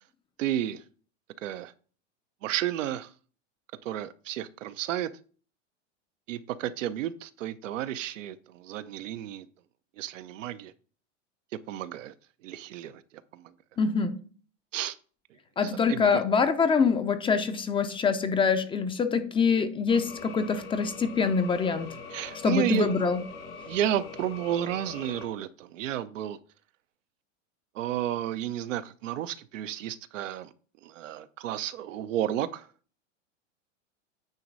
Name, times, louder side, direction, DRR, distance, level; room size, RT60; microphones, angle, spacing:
voice 1, 0.4-0.8 1.4-1.7 2.4-3.1 3.8-5.1 6.3-9.5 10.0-10.7 11.5-12.1 12.4-13.5 14.7-15.0 15.7-16.2 22.1-22.9 23.7-26.4 27.7-30.5 30.8-32.7, right 11 dB, 85° right, 0.7 m, -32 dB
voice 2, 13.8-14.2 15.6-21.9 22.4-23.2, left 5 dB, 15° left, 0.5 m, -25 dB
sound 1, 19.9-25.3, left 4 dB, 75° left, 2.1 m, -43 dB
9.1 x 3.1 x 5.3 m
hypercardioid pair, 120°, 37 cm